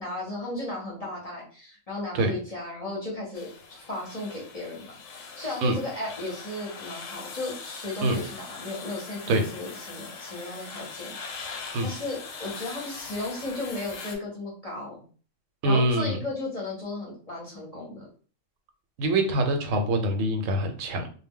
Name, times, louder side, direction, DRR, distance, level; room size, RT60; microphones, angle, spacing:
voice 1, 0.0-15.0 15.6-18.1, left 2 dB, 35° left, -4 dB, 0.7 m, -35 dB
sound 1, 3.3-14.2, left 5 dB, 85° left, 1.0 m, -41 dB
voice 2, 15.6-16.2 19.0-21.1, right 1 dB, 80° right, 5 dB, 0.9 m, -24 dB
2.1 x 2.0 x 3.5 m, 0.41 s
omnidirectional pair, 1.3 m